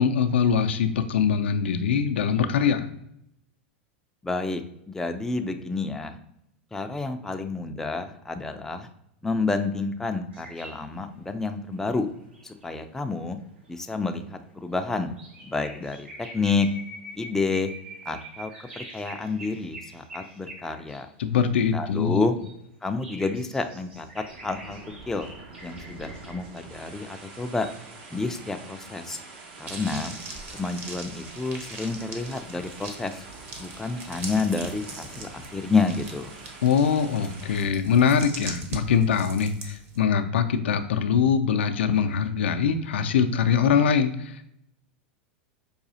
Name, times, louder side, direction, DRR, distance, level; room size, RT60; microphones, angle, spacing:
voice 1, 0.0-2.9 21.2-22.2 36.6-44.5, left 7 dB, 80° left, 7 dB, 0.4 m, -23 dB
voice 2, 4.2-4.6 4.9-6.2 6.7-8.9 9.2-12.1 12.4-13.4 13.7-15.1 15.4-16.7 17.2-17.7 18.1-18.5 18.8-21.1 21.7-22.4 22.8-24.8 25.1-25.3 25.6-27.7 28.1-29.2 29.6-30.2 30.5-33.2 33.6-36.3, left 3 dB, 5° left, 6 dB, 0.3 m, -29 dB
sound 1, 10.3-21.1 21.7-26.6 27.4-27.8, right 1 dB, 85° right, 1.2 m, -45 dB
sound 2, 23.8-37.6, right 3 dB, 65° right, 0.9 m, -45 dB
sound 3, 29.7-40.0, right 2 dB, 35° right, 0.8 m, -41 dB
4.8 x 2.3 x 2.7 m, 0.76 s
hypercardioid pair, 100°, 6 cm